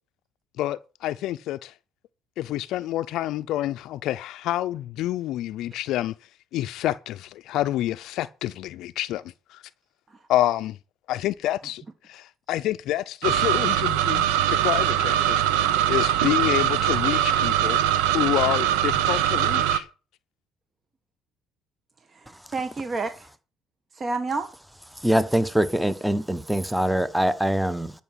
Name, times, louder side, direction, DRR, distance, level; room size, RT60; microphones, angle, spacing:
voice 1, 0.6-1.7 2.4-9.6 10.3-10.8 11.1-17.8 18.1-19.9, left 14 dB, 70° left, 0.5 m, -28 dB
sound 1, 13.2-19.8, right 11 dB, 85° right, 0.9 m, -22 dB
voice 2, 22.1-23.3 23.9-24.5 25.2-25.3, right 3 dB, 35° right, 1.5 m, -30 dB
voice 3, 25.0-27.9, right 1 dB, 5° right, 1.1 m, -23 dB
12.5 x 5.9 x 7.5 m
supercardioid pair, 80°, 0 cm